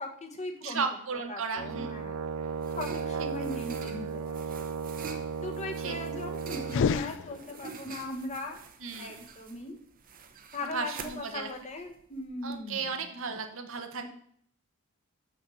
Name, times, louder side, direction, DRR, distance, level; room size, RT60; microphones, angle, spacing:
voice 1, 0.0-0.8 1.3-2.2 2.7-4.9 5.4-8.6 9.0-9.8 10.5-13.1 14.0-14.1, left 2 dB, 30° left, 3 dB, 1.2 m, -39 dB
voice 2, 0.6-2.0 3.2-3.3 5.8-5.9 8.8-9.2 10.7-11.5 12.4-14.1, right 5 dB, 65° right, 6 dB, 1.1 m, -35 dB
Brass instrument, 1.6-7.1, right 6 dB, 90° right, 0.5 m, -35 dB
sound 1, 2.4-12.6, right 5 dB, 40° right, 0.9 m, -47 dB
sound 2, 6.6-7.9, left 6 dB, 60° left, 0.3 m, -30 dB
6.5 x 6.2 x 6.9 m, 0.63 s
head